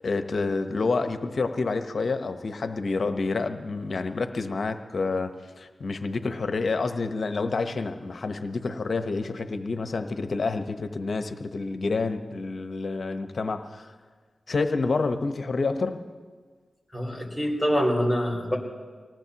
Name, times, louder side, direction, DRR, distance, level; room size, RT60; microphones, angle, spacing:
voice 1, 0.0-13.9 14.5-16.0, left 3 dB, 65° left, 8 dB, 1.0 m, -28 dB
voice 2, 16.9-18.6, equal, 5° right, -1 dB, 5.4 m, -25 dB
25.5 x 18.5 x 3.0 m, 1.5 s
cardioid pair, 40°, 0 cm